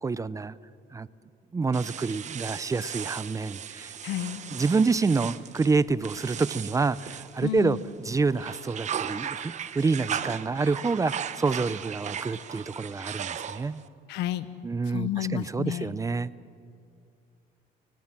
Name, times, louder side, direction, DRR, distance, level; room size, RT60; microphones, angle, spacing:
voice 1, 0.0-0.6 0.9-1.1 1.5-4.0 4.5-13.8 14.6-16.3, right 4 dB, 20° right, 18 dB, 0.5 m, -27 dB
sound 1, 1.7-7.9 8.3-13.9, right 8 dB, 45° right, 0.9 m, -37 dB
voice 2, 4.0-4.4 7.4-7.8 14.1-14.5 14.9-15.9, left 12 dB, 90° left, 14 dB, 1.0 m, -31 dB
24.5 x 18.0 x 7.3 m, 2.4 s
cardioid pair, 110°, 17 cm